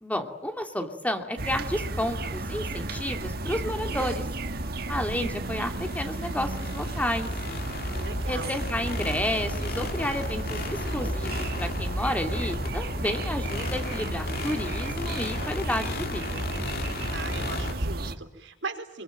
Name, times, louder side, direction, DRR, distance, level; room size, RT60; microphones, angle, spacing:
voice 1, 0.0-4.2 4.9-7.3 8.3-16.4, left 1 dB, 10° left, 5 dB, 2.8 m, -31 dB
sound 1, 1.4-18.1, right 2 dB, 60° right, 1.8 m, -33 dB
sound 2, 4.4-17.7, left 2 dB, 55° left, 2.3 m, -34 dB
voice 2, 7.9-8.6 17.1-19.0, right 4 dB, 85° right, 6 dB, 4.5 m, -38 dB
26.5 x 23.5 x 9.2 m, 0.82 s
head